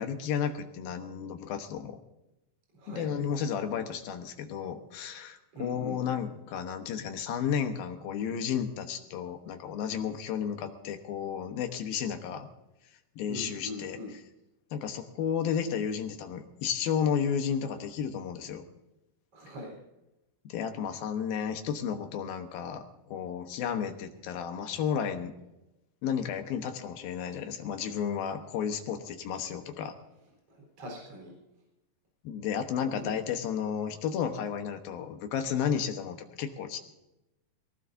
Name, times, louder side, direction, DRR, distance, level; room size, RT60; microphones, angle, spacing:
voice 1, 0.0-2.0 2.9-12.5 13.2-14.2 14.7-18.6 20.4-25.3 26.0-29.9 32.2-36.8, left 8 dB, 70° left, 6 dB, 2.7 m, -32 dB
voice 2, 2.7-3.1 5.5-6.0 13.3-14.1 19.3-19.8 30.5-31.3 33.0-33.1, left 1 dB, 35° right, -1 dB, 4.9 m, -41 dB
23.0 x 18.0 x 2.7 m, 0.94 s
omnidirectional pair, 4.7 m